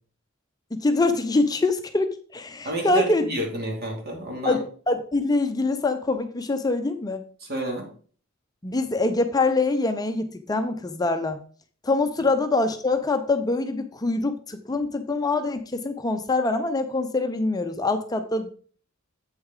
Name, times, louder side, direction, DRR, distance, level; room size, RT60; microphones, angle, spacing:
voice 1, 0.7-3.3 4.4-7.2 8.6-11.4 11.8-18.5, left 3 dB, 20° left, 7 dB, 0.5 m, -24 dB
voice 2, 2.6-4.6 7.4-7.9, right 1 dB, 50° right, 1 dB, 2.4 m, -29 dB
8.1 x 6.3 x 3.7 m, 0.43 s
head